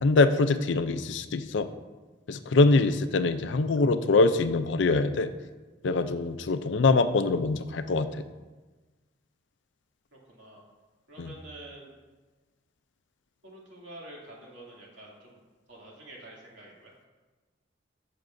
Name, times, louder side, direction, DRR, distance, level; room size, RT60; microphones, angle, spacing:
voice 1, 0.0-1.7 2.3-5.3 5.8-8.2 11.2-11.3, left 3 dB, 75° left, 10 dB, 0.5 m, -24 dB
voice 2, 10.1-10.6 11.1-11.9 13.4-15.4 15.7-16.9, right 1 dB, 75° right, -4 dB, 2.5 m, -47 dB
14.5 x 6.7 x 2.6 m, 1.3 s
head